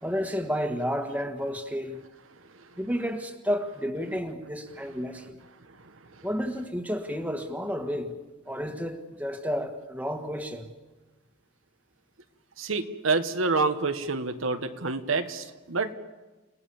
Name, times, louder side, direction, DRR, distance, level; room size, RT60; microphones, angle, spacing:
voice 1, 0.0-2.0 2.8-5.4 6.2-8.1 8.5-10.7, equal, 10° right, 5 dB, 1.7 m, -31 dB
voice 2, 12.6-15.9, right 3 dB, 85° right, 8 dB, 1.4 m, -27 dB
29.5 x 18.5 x 7.2 m, 1.2 s
head